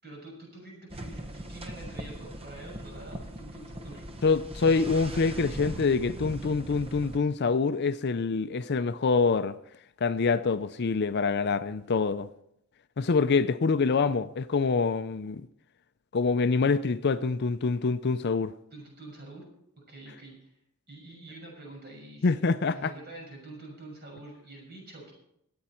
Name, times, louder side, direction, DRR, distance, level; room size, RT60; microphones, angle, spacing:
voice 1, 0.0-4.1 18.7-19.4 19.9-20.5 20.9-25.1, right 2 dB, 50° right, 6.4 m, -46 dB
sound 1, 0.9-7.2, right 1 dB, 25° right, 0.9 m, -40 dB
voice 2, 4.2-9.6 10.0-12.3 13.0-15.5 16.1-18.5 22.2-22.9, left 4 dB, 50° left, 0.5 m, -25 dB
22.0 x 8.8 x 4.4 m
head